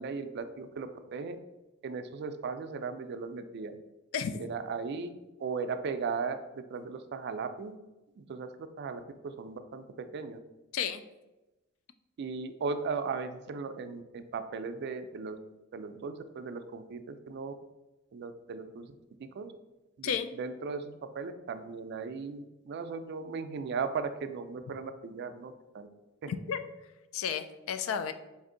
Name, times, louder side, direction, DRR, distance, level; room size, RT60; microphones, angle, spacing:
voice 1, 0.0-1.4 1.8-3.7 4.4-5.1 5.4-6.4 6.7-7.7 8.3-8.5 8.8-9.8 10.1-10.4 12.2-15.4 15.7-17.5 18.1-18.8 19.4-19.5 20.0-20.1 20.4-25.9, right 5 dB, 55° right, 9 dB, 0.3 m, -37 dB
voice 2, 4.1-4.5 10.7-11.0 20.0-20.3 26.3-26.6 27.1-28.1, left 7 dB, 85° left, 9 dB, 0.3 m, -32 dB
4.1 x 2.6 x 3.7 m, 1.0 s
head